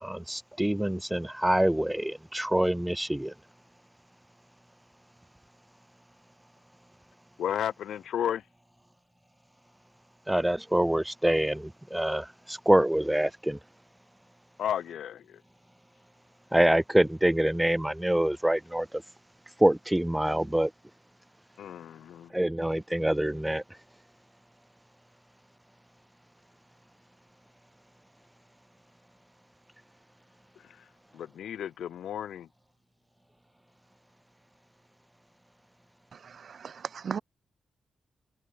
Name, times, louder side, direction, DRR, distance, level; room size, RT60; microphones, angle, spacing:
voice 1, 0.0-3.3 10.3-13.6 16.5-19.0 19.6-20.7 22.3-23.6, right 1 dB, 10° right, 2.0 m, -25 dB
voice 2, 7.4-8.5 14.6-15.4 21.6-22.3 30.6-32.5, left 10 dB, 80° left, 1.6 m, -34 dB
voice 3, 36.1-37.2, right 6 dB, 60° right, 1.5 m, -37 dB
supercardioid pair, 50°, 0 cm